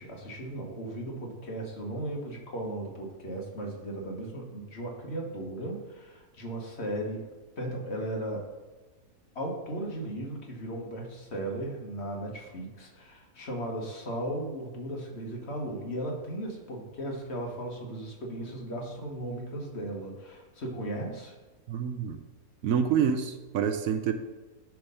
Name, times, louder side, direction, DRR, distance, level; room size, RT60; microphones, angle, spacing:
voice 1, 0.0-7.3 7.6-8.5 9.3-21.3, right 1 dB, 45° left, 0 dB, 1.5 m, -36 dB
voice 2, 21.7-22.2 22.6-24.1, right 7 dB, 70° right, 8 dB, 0.9 m, -27 dB
10.5 x 3.6 x 5.5 m, 1.2 s
omnidirectional pair, 1.6 m